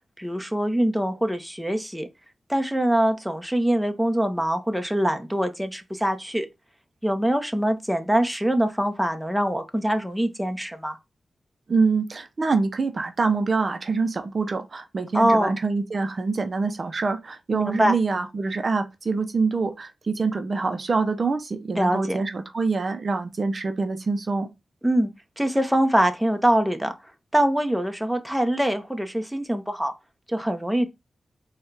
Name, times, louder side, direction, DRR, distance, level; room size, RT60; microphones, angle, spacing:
voice 1, 0.2-2.1 2.5-6.5 7.0-11.0 15.1-15.5 17.5-17.9 21.7-22.2 24.8-25.1 25.4-26.9 27.3-29.9 30.3-30.9, right 1 dB, 5° right, 0.8 m, -23 dB
voice 2, 11.7-24.5, right 4 dB, 55° right, 0.6 m, -25 dB
4.3 x 2.3 x 3.3 m
cardioid pair, 45°, 0 cm